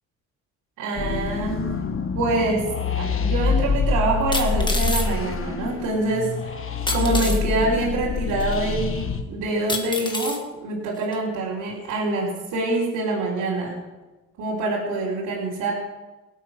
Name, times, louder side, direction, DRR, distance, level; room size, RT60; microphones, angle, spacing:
voice 1, 0.8-1.7 2.1-2.7 3.0-13.7 14.4-15.7, right 2 dB, 90° right, -6 dB, 3.6 m, -25 dB
sound 1, 1.0-9.2, left 5 dB, 45° left, 1.4 m, -26 dB
sound 2, 3.0-3.1 4.3-5.1 6.9-7.4 8.4-8.5 9.7-10.4 11.1-11.2, left 2 dB, 15° left, 1.9 m, -28 dB
18.0 x 8.3 x 6.3 m, 1.2 s
cardioid pair, 90°, 30 cm